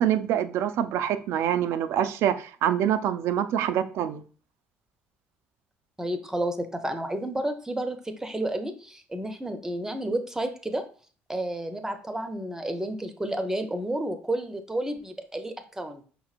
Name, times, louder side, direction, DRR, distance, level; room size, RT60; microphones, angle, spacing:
voice 1, 0.0-4.2, right 10 dB, 70° right, 0.4 m, -25 dB
voice 2, 6.0-10.8 11.3-16.1, right 1 dB, 10° right, 0.6 m, -31 dB
5.0 x 3.0 x 2.4 m
supercardioid pair, 70°, 5 cm